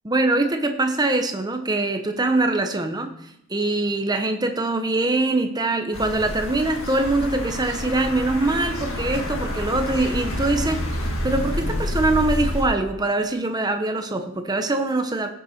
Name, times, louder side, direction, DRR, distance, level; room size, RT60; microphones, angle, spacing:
voice 1, 0.0-3.1 3.5-15.3, right 2 dB, 20° right, 6 dB, 0.9 m, -23 dB
sound 1, 5.9-12.6, left 1 dB, 65° left, 1.9 m, -28 dB
16.0 x 6.7 x 4.3 m, 0.77 s
head